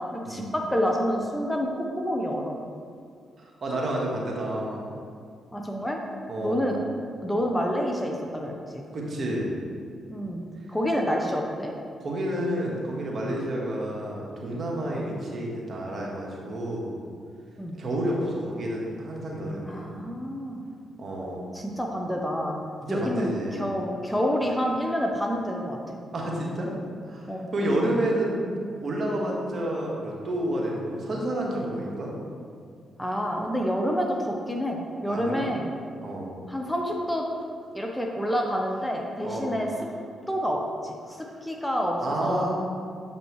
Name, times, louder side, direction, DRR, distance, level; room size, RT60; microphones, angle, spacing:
voice 1, 0.0-2.6 5.5-6.0 6.4-6.8 7.2-8.8 10.1-10.4 10.7-11.7 17.6-17.8 19.6-20.6 21.5-22.6 22.9-25.8 27.3-27.5 33.0-35.7 36.5-37.2 37.7-39.7 40.3-42.5, equal, 10° left, 1 dB, 0.9 m, -28 dB
voice 2, 3.4-4.8 6.3-6.7 8.9-9.5 12.0-17.0 17.8-20.0 21.0-21.5 22.8-23.7 26.1-26.7 27.0-28.4 28.8-32.1 35.1-35.4 36.0-36.3 39.2-39.5 42.0-42.5, right 1 dB, 50° right, -3 dB, 1.6 m, -30 dB
7.9 x 5.2 x 3.2 m, 2.2 s
supercardioid pair, 50°, 0 cm